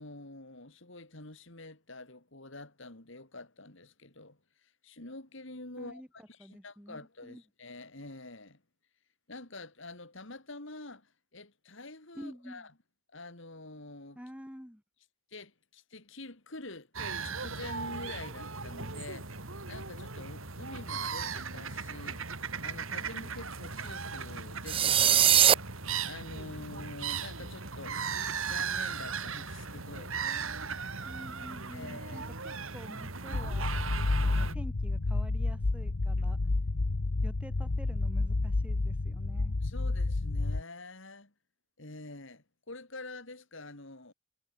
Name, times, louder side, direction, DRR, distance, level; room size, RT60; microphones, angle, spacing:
voice 1, 0.0-8.6 9.3-12.7 13.1-14.2 15.3-16.9 17.2-22.3 22.6-28.0 28.5-30.1 31.7-32.3 39.6-41.3 41.8-44.1, left 2 dB, 55° left, 2.7 m, -47 dB
voice 2, 5.8-6.1 6.4-7.4 12.1-12.6 14.1-14.8 31.0-33.7 34.2-36.4 37.2-39.6, equal, 5° right, 6.9 m, -48 dB
sound 1, 16.9-34.5, right 5 dB, 70° right, 3.7 m, -37 dB
sound 2, 24.7-25.5, right 10 dB, 25° right, 0.5 m, -21 dB
sound 3, 33.3-40.6, left 2 dB, 85° left, 1.0 m, -30 dB
head